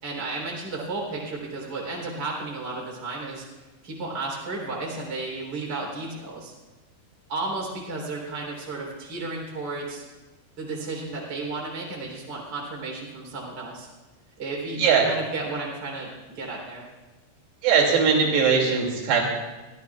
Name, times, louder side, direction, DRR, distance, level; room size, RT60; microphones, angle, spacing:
voice 1, 0.0-3.5 3.8-6.5 7.3-10.0 10.6-13.9 14.4-16.9, right 3 dB, 25° right, -3 dB, 3.6 m, -33 dB
voice 2, 14.8-15.1 17.6-19.2, right 6 dB, 75° right, 0 dB, 4.6 m, -20 dB
23.0 x 16.0 x 2.4 m, 1.2 s
omnidirectional pair, 5.0 m